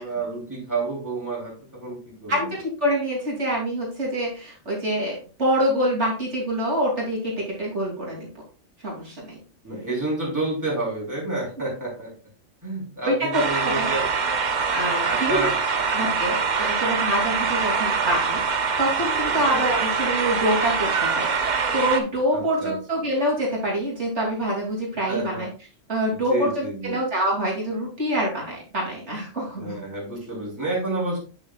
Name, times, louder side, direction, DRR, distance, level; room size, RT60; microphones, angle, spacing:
voice 1, 0.0-2.5 9.6-12.1 12.6-14.1 15.0-16.2 19.3-19.4 22.3-22.8 25.1-25.4 26.1-26.9 29.6-31.2, right 2 dB, 15° right, -4 dB, 3.2 m, -30 dB
voice 2, 2.3-8.3 8.8-9.4 13.0-13.9 14.7-15.5 15.9-25.5 25.9-29.8, right 1 dB, 65° right, -3 dB, 3.0 m, -26 dB
sound 1, 13.3-22.0, right 5 dB, 45° right, 0.8 m, -24 dB
8.8 x 7.1 x 2.3 m, 0.36 s
omnidirectional pair, 1.3 m